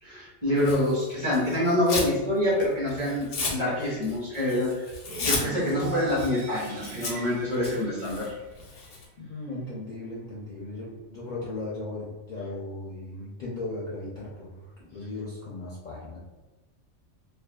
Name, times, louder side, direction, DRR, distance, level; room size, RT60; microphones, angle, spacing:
voice 1, 0.0-4.9 5.2-8.3, left 1 dB, 30° right, -9 dB, 0.8 m, -26 dB
Tearing, 0.6-2.2 2.5-9.0, left 3 dB, 75° left, 0.9 m, -34 dB
sound 1, 5.0-9.0, right 4 dB, 80° right, 0.9 m, -41 dB
voice 2, 9.2-16.2, left 2 dB, 55° left, -6 dB, 0.5 m, -37 dB
2.5 x 2.3 x 2.2 m, 1.1 s
omnidirectional pair, 1.2 m